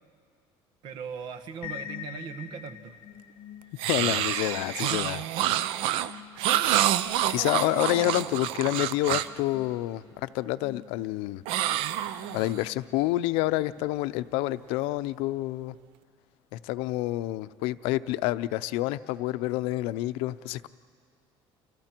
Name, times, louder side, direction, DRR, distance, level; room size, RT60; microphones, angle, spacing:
voice 1, 0.8-3.0 6.4-6.9, right 6 dB, 55° right, 9 dB, 1.4 m, -40 dB
sound 1, 1.6-13.3, left 10 dB, 60° left, 0.9 m, -47 dB
sound 2, 3.8-9.4 11.5-12.6, right 12 dB, 70° right, 0.6 m, -27 dB
voice 2, 3.9-5.7 7.3-11.4 12.3-15.7 16.5-20.7, left 17 dB, 85° left, 14 dB, 0.6 m, -28 dB
28.5 x 28.5 x 4.5 m, 2.2 s
cardioid pair, 160°, 9 cm